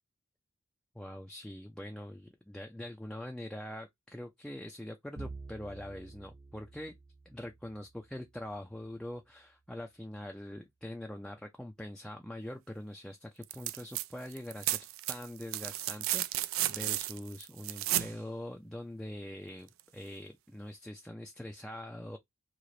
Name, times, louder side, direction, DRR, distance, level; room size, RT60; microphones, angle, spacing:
voice 1, 0.9-7.0 7.3-14.8 15.1-22.2, left 1 dB, 5° left, 0.4 m, -43 dB
Bowed string instrument, 5.2-9.4, right 3 dB, 35° right, 0.6 m, -50 dB
sound 1, 13.4-14.1 14.3-18.1 19.8-19.9, right 15 dB, 80° right, 0.3 m, -33 dB
3.1 x 2.5 x 3.7 m
head